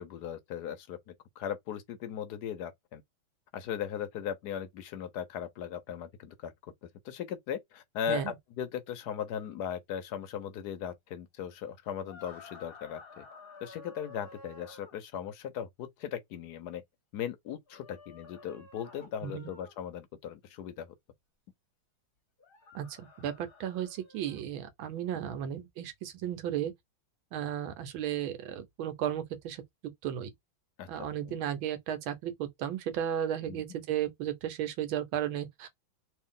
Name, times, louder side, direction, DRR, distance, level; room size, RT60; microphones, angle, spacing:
voice 1, 0.0-3.0 3.5-13.2 13.6-16.8 17.1-20.9 30.8-31.4 33.5-33.6, left 9 dB, 70° left, 1.0 m, -38 dB
sound 1, 12.0-15.0 17.7-19.8 22.4-24.4, left 4 dB, 40° left, 0.8 m, -52 dB
voice 2, 19.2-19.5 22.7-26.7 27.3-29.6 30.0-30.3 30.9-35.7, right 10 dB, 85° right, 1.6 m, -34 dB
3.3 x 2.6 x 3.6 m
omnidirectional pair, 2.2 m